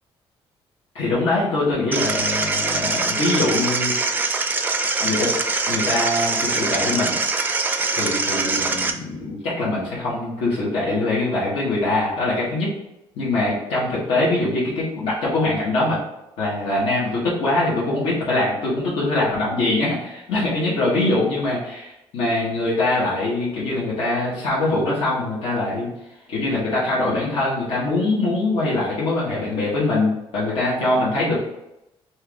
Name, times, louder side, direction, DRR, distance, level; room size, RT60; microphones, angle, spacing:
voice 1, 0.9-3.9 5.0-5.4 5.7-7.2 7.9-12.7 13.1-16.0 16.4-25.9 26.3-31.4, left 2 dB, 90° left, -7 dB, 1.5 m, -23 dB
sound 1, 1.9-8.9, right 3 dB, 20° right, 0.3 m, -23 dB
4.6 x 2.7 x 3.5 m, 0.89 s
cardioid pair, 155°, 10 cm